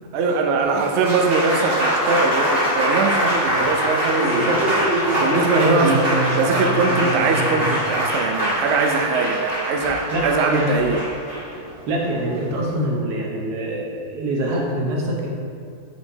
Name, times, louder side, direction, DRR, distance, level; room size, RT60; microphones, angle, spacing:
voice 1, 0.1-4.8 5.2-6.1 6.3-11.0, right 4 dB, 65° right, 3 dB, 0.7 m, -22 dB
Applause, 0.7-12.9, right 1 dB, 40° right, 1.7 m, -22 dB
voice 2, 9.8-10.7 11.5-15.3, right 1 dB, 80° right, -2 dB, 1.5 m, -25 dB
8.0 x 5.0 x 2.7 m, 2.4 s
omnidirectional pair, 1.7 m